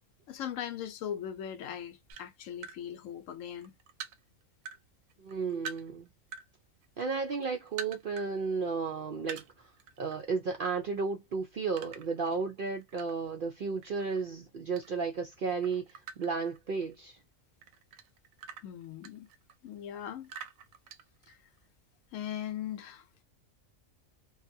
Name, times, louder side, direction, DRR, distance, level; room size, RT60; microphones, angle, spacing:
voice 1, 0.3-3.7 18.6-19.3 19.6-20.3 21.3-21.4 22.1-23.1, left 10 dB, 75° left, 0.9 m, -39 dB
sound 1, 2.1-2.8 3.3-4.8 5.1-6.5 6.8-8.3 8.6-8.7 9.2-10.2 10.5-10.8 11.7-13.4 13.8-15.2 15.5-17.1 17.6-19.7 20.2-21.6, right 6 dB, 85° right, 1.0 m, -45 dB
voice 2, 5.2-6.1 7.0-9.7 10.0-17.2, right 4 dB, 65° right, 0.5 m, -33 dB
2.7 x 2.2 x 2.6 m
omnidirectional pair, 1.4 m